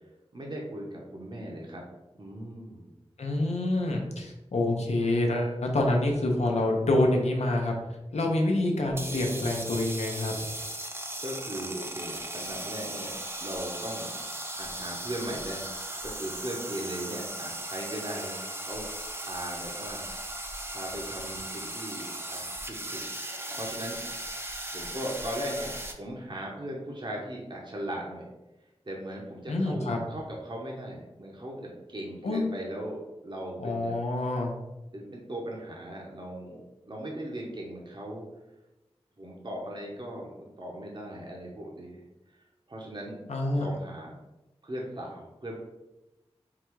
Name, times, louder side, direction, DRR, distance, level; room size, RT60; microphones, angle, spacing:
voice 1, 0.3-1.8 2.1-3.0 11.2-13.1 13.4-14.1 14.6-15.7 16.0-18.8 19.2-20.0 20.7-23.0 23.5-24.0 24.7-28.3 28.8-34.0 34.9-38.3 39.2-42.0 42.3-43.2 43.5-44.1 44.6-45.6, right 1 dB, 45° right, -2 dB, 0.9 m, -38 dB
voice 2, 3.2-7.7 8.1-10.3 29.5-30.0 32.2-32.4 33.6-34.5 43.3-43.7, left 2 dB, 85° left, 1 dB, 0.7 m, -27 dB
sound 1, 8.9-25.9, right 1 dB, 25° right, 0.6 m, -37 dB
3.8 x 2.3 x 4.5 m, 0.99 s
cardioid pair, 40°, 11 cm